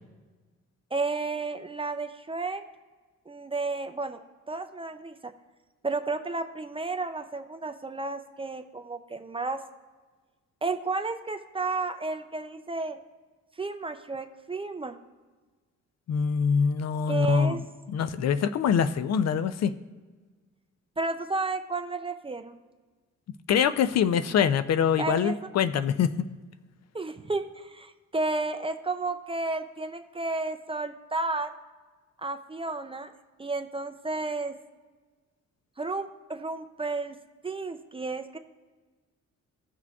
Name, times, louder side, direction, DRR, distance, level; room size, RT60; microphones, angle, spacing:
voice 1, 0.9-2.6 3.3-4.2 4.5-5.3 5.8-9.6 10.6-13.0 13.6-15.0 17.1-17.6 21.0-22.6 25.0-25.4 26.9-31.5 32.2-33.1 33.4-34.6 35.8-37.2 37.4-38.4, right 3 dB, 20° right, 7 dB, 0.4 m, -32 dB
voice 2, 16.1-17.6 17.9-19.7 23.5-26.2, left 7 dB, 60° left, 13 dB, 0.4 m, -24 dB
16.0 x 5.9 x 2.3 m, 1.4 s
cardioid pair, 130°, 30 cm